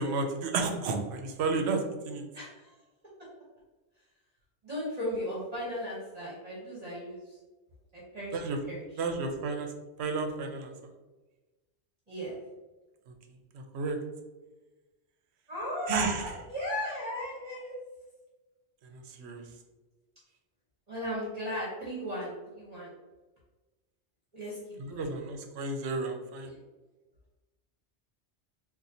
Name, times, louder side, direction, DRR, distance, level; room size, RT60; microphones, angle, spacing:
voice 1, 0.0-2.2 8.3-8.6 9.0-9.7 10.0-10.7 13.5-14.0 15.9-16.4 18.9-19.4 24.8-26.5, right 3 dB, 75° right, 4 dB, 0.8 m, -32 dB
voice 2, 4.6-7.2 8.1-8.4 8.7-9.0 12.1-12.3 15.5-17.7 20.9-22.9 24.3-24.6 24.9-25.1, equal, 40° right, -6 dB, 1.0 m, -36 dB
4.1 x 2.4 x 2.6 m, 1.2 s
omnidirectional pair, 1.1 m